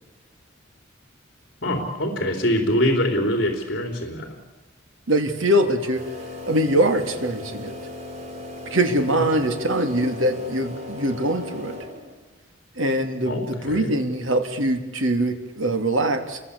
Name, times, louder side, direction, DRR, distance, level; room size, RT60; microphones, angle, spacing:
voice 1, 1.6-4.4 9.1-9.2 13.3-13.9, equal, 55° left, 4 dB, 3.7 m, -24 dB
voice 2, 5.1-6.0 6.5-7.8 8.7-11.8 12.7-16.4, right 1 dB, 85° right, 6 dB, 3.0 m, -23 dB
sound 1, 5.9-12.3, left 2 dB, 35° right, 4.2 m, -37 dB
29.0 x 23.0 x 8.5 m, 1.1 s
head